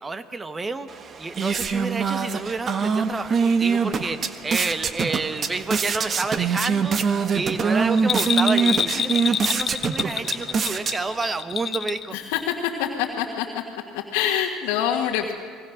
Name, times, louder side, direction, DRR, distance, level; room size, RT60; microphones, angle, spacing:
voice 1, 0.0-0.9 1.2-7.0 7.3-12.2, right 3 dB, 25° right, 11 dB, 1.6 m, -29 dB
sound 1, 0.9-11.4, right 5 dB, 40° right, 1.5 m, -24 dB
Bell, 8.0-12.1 12.4-12.5, left 8 dB, 45° left, 1.0 m, -26 dB
voice 2, 12.1-13.6 13.9-15.3, left 9 dB, 80° left, -2 dB, 1.7 m, -25 dB
29.5 x 21.0 x 6.6 m, 2.1 s
supercardioid pair, 80°, 0 cm